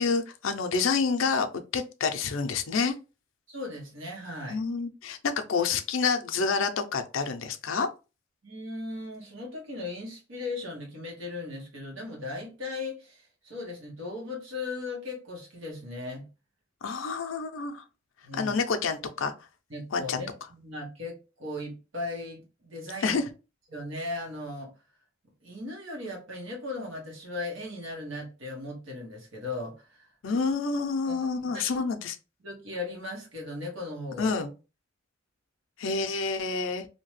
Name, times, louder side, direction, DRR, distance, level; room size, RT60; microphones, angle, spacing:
voice 1, 0.0-2.9 4.5-7.9 16.8-17.8 18.3-19.3 19.9-20.2 23.0-23.3 30.2-32.2 34.2-34.5 35.8-36.9, left 4 dB, 80° left, 0.5 m, -28 dB
voice 2, 3.5-4.6 8.4-16.2 18.2-18.6 19.7-23.2 23.7-24.7 25.4-30.1 31.1-31.8 32.4-34.3, left 2 dB, 80° right, 1.1 m, -37 dB
2.7 x 2.2 x 3.1 m
head